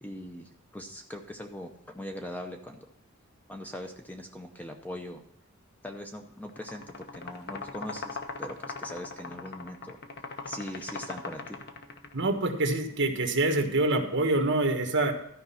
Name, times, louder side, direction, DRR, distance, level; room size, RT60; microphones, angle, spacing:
voice 1, 0.0-2.9 3.5-5.2 5.8-10.0 10.5-11.6, left 1 dB, 10° left, 4 dB, 0.7 m, -41 dB
sound 1, 6.5-12.2, left 4 dB, 50° left, 1.0 m, -40 dB
voice 2, 12.1-15.1, right 2 dB, 55° right, 4 dB, 1.5 m, -26 dB
13.5 x 5.3 x 5.7 m, 0.77 s
head